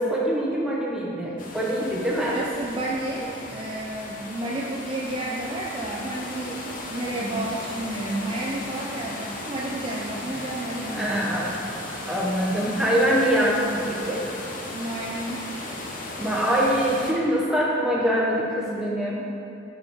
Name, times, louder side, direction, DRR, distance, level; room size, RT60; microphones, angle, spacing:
voice 1, 0.0-2.3 10.9-11.5 12.1-14.2 16.2-19.2, equal, 5° right, -5 dB, 0.8 m, -24 dB
sound 1, 1.4-17.1, left 2 dB, 45° left, 0.7 m, -36 dB
voice 2, 2.2-6.6 6.9-11.4 14.7-15.5, right 1 dB, 30° right, -4 dB, 0.4 m, -31 dB
5.5 x 5.3 x 3.5 m, 2.7 s
head